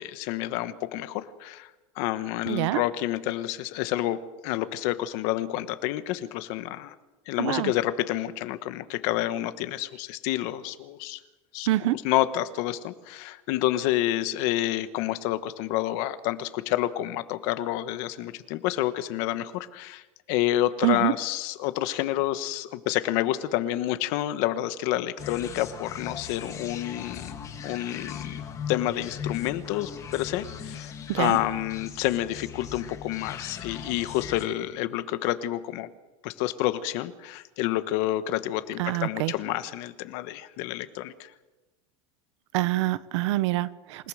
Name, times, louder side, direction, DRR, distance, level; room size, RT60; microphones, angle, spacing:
voice 1, 0.0-1.7 1.9-6.9 7.3-11.2 11.5-20.0 20.3-35.9 36.2-41.3, left 14 dB, 50° left, 12 dB, 1.3 m, -29 dB
voice 2, 2.5-2.8 7.4-7.7 11.7-12.0 20.8-21.1 31.1-31.4 38.8-39.3 42.5-44.1, right 16 dB, 70° right, 16 dB, 1.0 m, -25 dB
sound 1, 25.2-34.4, left 7 dB, 20° left, 1.8 m, -39 dB
28.0 x 18.5 x 6.5 m, 1.1 s
supercardioid pair, 175°, 15 cm